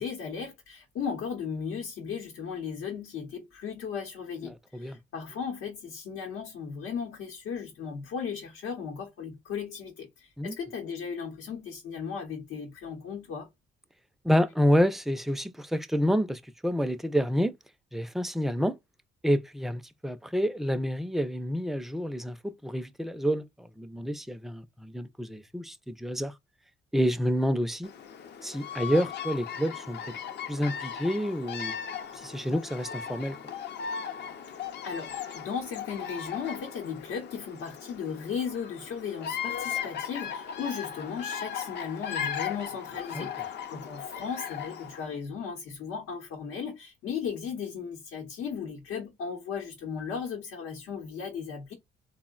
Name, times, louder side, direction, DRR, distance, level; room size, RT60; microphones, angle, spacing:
voice 1, 0.0-13.5 34.5-34.6 34.8-51.7, left 6 dB, 90° left, 0.8 m, -36 dB
voice 2, 4.5-5.0 10.4-10.6 14.2-17.5 17.9-18.8 19.2-26.3 26.9-27.9 28.4-30.0 30.5-31.8 32.1-33.4 43.1-43.3, equal, ahead, 0.3 m, -28 dB
Bird vocalization bird call bird song, 27.8-45.1, left 8 dB, 60° left, 0.5 m, -37 dB
3.6 x 2.1 x 2.3 m
cardioid pair, 90°, 20 cm